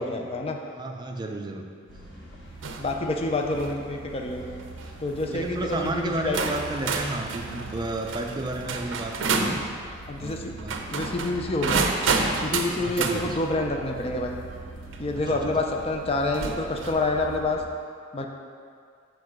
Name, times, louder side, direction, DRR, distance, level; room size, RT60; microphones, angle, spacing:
voice 1, 0.0-0.6 2.1-2.3 2.8-4.6 5.0-6.4 8.7-8.8 10.1-10.5 10.9-11.9 12.4-14.4 15.0-17.6 18.1-18.3, left 2 dB, 30° left, 2 dB, 0.5 m, -28 dB
voice 2, 0.7-1.7 5.3-9.7 10.1-10.8 12.8-13.4 15.3-15.6, right 2 dB, 20° right, 2 dB, 0.5 m, -32 dB
sound 1, 1.9-17.6, right 3 dB, 75° left, 1.7 m, -42 dB
sound 2, 2.6-2.9 3.4-3.8 4.6-4.9 5.7-5.8 6.3-9.6 10.6-13.2 14.9-15.0 16.3-17.0, right 4 dB, 80° right, 0.6 m, -29 dB
6.3 x 4.7 x 4.9 m, 2.2 s
head